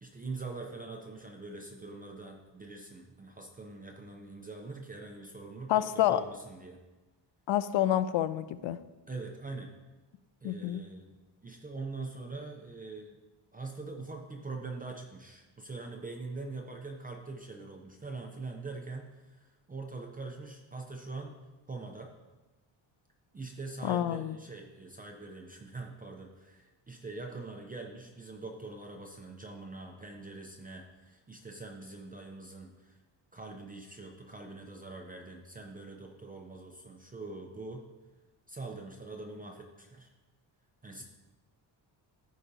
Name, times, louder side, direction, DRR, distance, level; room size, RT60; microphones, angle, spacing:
voice 1, 0.0-6.8 9.1-9.7 10.4-11.2 11.4-13.2 13.5-21.4 21.7-22.1 23.3-33.0 33.3-37.8 38.5-40.1 40.8-41.0, right 3 dB, 20° right, 1 dB, 0.5 m, -43 dB
voice 2, 5.7-6.2 7.5-8.8 10.4-10.8 23.8-24.4, left 12 dB, 75° left, 14 dB, 0.5 m, -28 dB
14.0 x 5.0 x 2.7 m, 1.1 s
wide cardioid pair, 175°, 47 cm